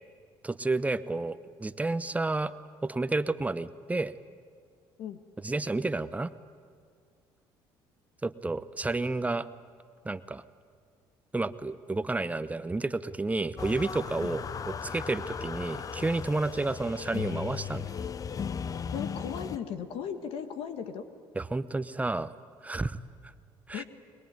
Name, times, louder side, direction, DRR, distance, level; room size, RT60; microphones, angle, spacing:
voice 1, 0.4-2.5 2.8-4.1 5.4-6.3 8.2-9.5 10.0-10.4 11.3-17.9 21.4-22.3 22.6-23.0 23.7-23.8, right 2 dB, 15° right, 13 dB, 0.8 m, -31 dB
sound 1, 13.6-19.6, left 7 dB, 40° left, 0.7 m, -36 dB
voice 2, 18.9-21.0 23.7-23.8, left 8 dB, 75° left, 8 dB, 1.6 m, -37 dB
23.0 x 21.5 x 9.5 m, 2.1 s
supercardioid pair, 85°, 10 cm